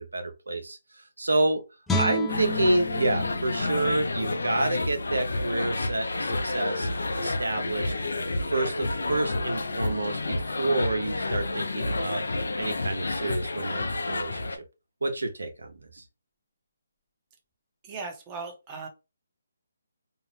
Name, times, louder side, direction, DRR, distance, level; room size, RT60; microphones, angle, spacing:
voice 1, 0.0-1.6 1.9-6.9 7.1-7.9 8.5-12.2 12.6-14.6 15.0-16.0, right 2 dB, 90° right, 0.7 m, -29 dB
Guitar, 1.9-5.0 5.4-5.6, equal, 5° left, 0.4 m, -33 dB
sound 1, 2.3-14.6, left 2 dB, 80° left, 0.4 m, -30 dB
voice 2, 17.8-18.9, right 4 dB, 20° right, 0.7 m, -37 dB
2.7 x 2.0 x 3.0 m
hypercardioid pair, 155°, 0 cm